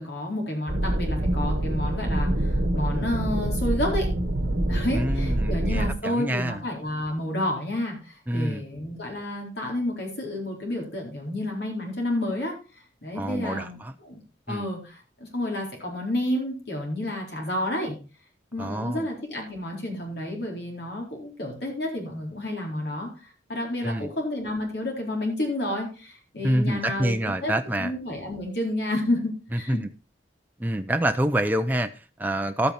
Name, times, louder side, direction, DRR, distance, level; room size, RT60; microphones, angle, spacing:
voice 1, 0.0-4.1 4.6-12.5 13.0-14.2 14.5-17.9 18.5-23.1 23.5-29.8, left 1 dB, 60° left, 4.2 m, -30 dB
sound 1, 0.7-5.9, right 1 dB, 55° right, 1.8 m, -25 dB
voice 2, 4.9-6.6 8.3-8.6 13.2-13.9 14.5-14.7 18.6-19.1 23.8-24.1 26.4-27.9 29.5-29.9 30.6-32.7, right 1 dB, 10° right, 0.5 m, -27 dB
12.0 x 8.5 x 4.2 m
head